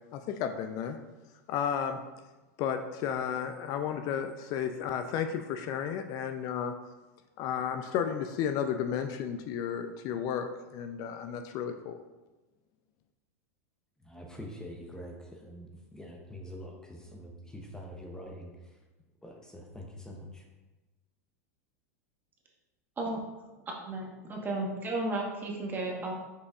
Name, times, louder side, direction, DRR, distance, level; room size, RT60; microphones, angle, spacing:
voice 1, 0.1-1.0 1.5-2.0 2.6-6.8 7.4-12.0, left 8 dB, 45° left, 7 dB, 0.3 m, -33 dB
voice 2, 14.0-18.8 19.2-20.4, equal, 10° left, 0 dB, 0.6 m, -45 dB
voice 3, 23.8-26.1, right 2 dB, 25° right, -1 dB, 1.1 m, -33 dB
5.5 x 3.9 x 2.3 m, 1.2 s
hypercardioid pair, 110°, 8 cm